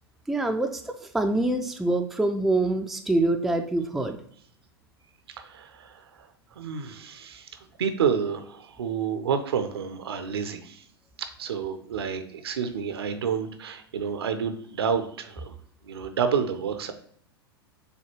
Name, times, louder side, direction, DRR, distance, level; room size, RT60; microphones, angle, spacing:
voice 1, 0.3-4.2, right 2 dB, ahead, 5 dB, 0.3 m, -25 dB
voice 2, 5.3-6.3 6.6-7.5 7.8-10.8 11.2-15.5 15.8-16.9, right 7 dB, 70° right, 8 dB, 0.6 m, -29 dB
6.6 x 2.3 x 3.0 m, 0.62 s
figure-of-eight pair, 90°, 13 cm